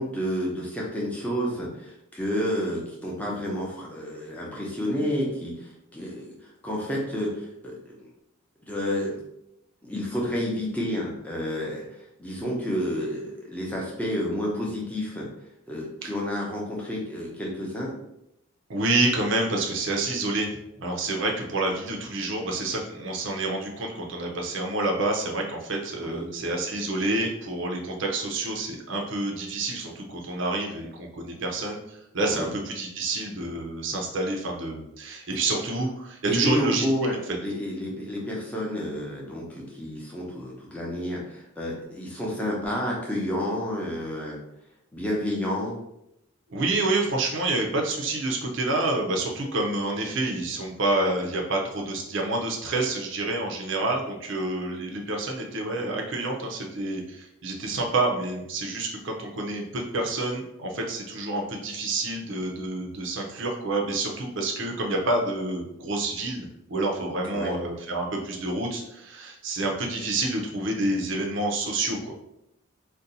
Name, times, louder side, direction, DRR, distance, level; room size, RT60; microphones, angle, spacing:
voice 1, 0.0-8.1 8.7-9.2 9.8-15.3 15.7-17.9 26.0-26.3 32.3-32.5 36.2-37.1 37.4-44.4 44.9-45.8 67.3-67.6, equal, 5° left, -4 dB, 0.6 m, -30 dB
voice 2, 18.7-36.8 46.5-72.1, right 2 dB, 55° right, 1 dB, 0.5 m, -28 dB
2.6 x 2.2 x 3.9 m, 0.82 s
head